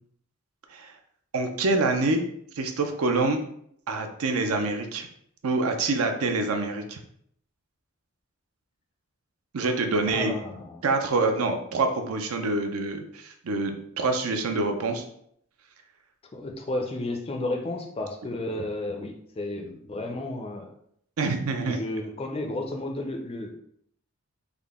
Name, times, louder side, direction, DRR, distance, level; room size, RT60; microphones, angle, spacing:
voice 1, 1.3-2.2 2.6-3.4 3.9-5.1 5.4-7.0 9.5-10.3 10.8-15.0 21.2-21.8, right 3 dB, 75° right, 5 dB, 0.5 m, -26 dB
voice 2, 10.1-10.8 16.3-20.7 21.5-23.6, left 2 dB, 25° left, 3 dB, 0.4 m, -32 dB
3.6 x 2.1 x 3.5 m, 0.68 s
head